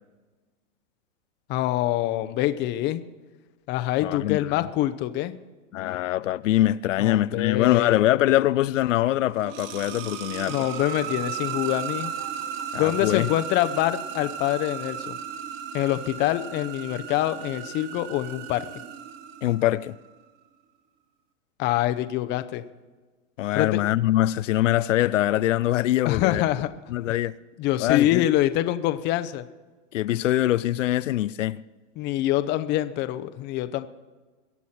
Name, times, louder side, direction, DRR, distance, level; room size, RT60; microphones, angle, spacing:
voice 1, 1.5-3.0 3.7-5.3 7.0-8.0 10.5-12.1 12.8-15.1 15.7-18.7 21.6-22.6 23.5-23.8 26.0-26.7 27.6-29.4 32.0-33.9, left 14 dB, 30° left, 0.7 m, -25 dB
voice 2, 4.0-4.7 5.7-10.7 12.7-13.3 19.4-20.0 23.4-26.4 26.9-27.3 27.8-28.3 29.9-31.6, left 14 dB, 90° left, 0.6 m, -23 dB
sound 1, 9.1-19.9, right 8 dB, 35° right, 1.1 m, -35 dB
22.5 x 8.2 x 4.3 m
hypercardioid pair, 140°, 37 cm